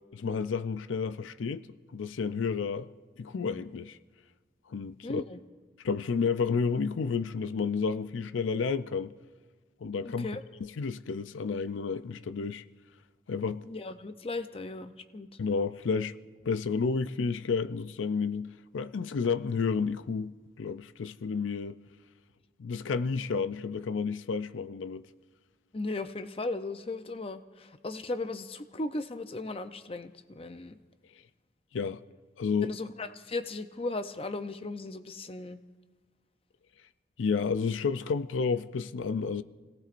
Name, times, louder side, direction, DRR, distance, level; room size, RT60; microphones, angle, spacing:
voice 1, 0.2-1.7 1.9-2.9 3.2-4.0 4.7-5.2 5.8-9.1 9.8-10.3 10.6-12.6 13.3-13.6 15.4-16.1 16.4-21.8 22.6-25.0 31.7-32.0 32.4-32.8 37.2-39.4, left 5 dB, 90° left, 0.5 m, -31 dB
voice 2, 5.0-5.4 10.0-10.4 13.7-15.3 25.7-30.8 32.6-35.6, left 2 dB, 30° left, 0.6 m, -36 dB
29.0 x 18.0 x 2.6 m
head